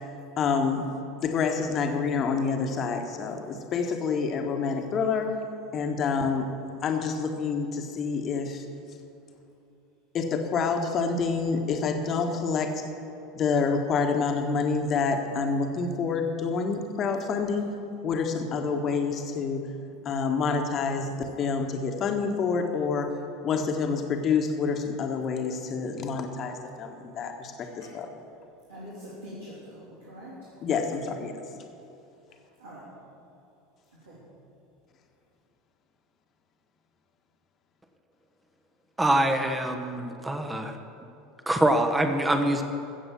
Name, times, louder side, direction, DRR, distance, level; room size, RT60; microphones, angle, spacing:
voice 1, 0.4-0.9 1.2-5.3 5.7-6.5 6.8-8.6 10.1-12.8 13.3-17.7 18.0-19.7 20.0-23.1 23.4-28.1 30.6-31.4, left 5 dB, 35° left, 5 dB, 1.4 m, -27 dB
voice 2, 28.7-30.5 32.6-32.8 34.0-34.2, equal, 70° right, -9 dB, 3.3 m, -43 dB
voice 3, 39.0-40.7 41.5-42.6, right 1 dB, 10° right, 6 dB, 1.2 m, -24 dB
15.5 x 7.7 x 7.2 m, 2.8 s
figure-of-eight pair, 75°, 0 cm